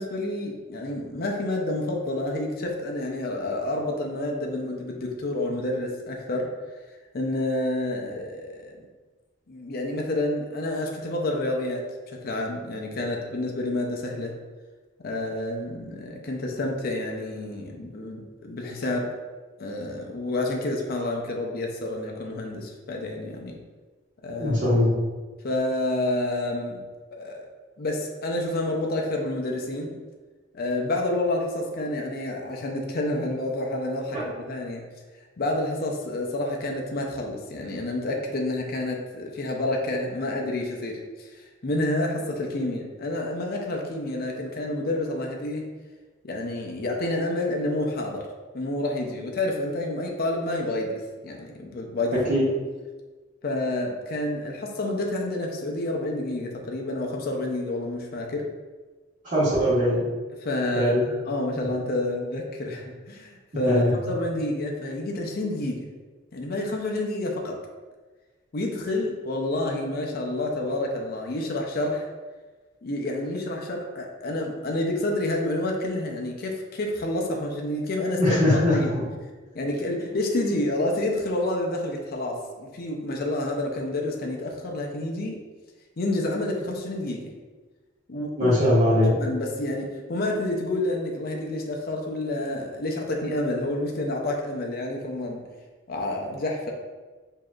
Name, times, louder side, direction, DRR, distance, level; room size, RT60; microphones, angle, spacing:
voice 1, 0.0-6.5 7.1-8.8 9.5-14.3 15.0-19.1 19.6-23.6 24.2-24.6 25.4-26.8 27.1-27.5 27.8-29.9 30.5-34.8 35.4-45.6 46.2-48.3 48.5-52.2 53.4-58.5 60.4-60.9 61.3-65.9 66.3-67.6 68.5-72.1 72.8-78.4 78.7-78.9 79.5-85.4 86.0-87.3 88.1-88.6 89.0-95.4 95.9-96.7, left 1 dB, 50° left, 0 dB, 0.5 m, -29 dB
voice 2, 24.4-24.9 52.3-52.4 59.2-60.0 60.7-61.0 61.6-61.7 63.6-63.9 78.2-78.7 88.4-89.1, left 1 dB, 40° right, -13 dB, 1.4 m, -21 dB
4.9 x 2.7 x 2.4 m, 1.3 s
head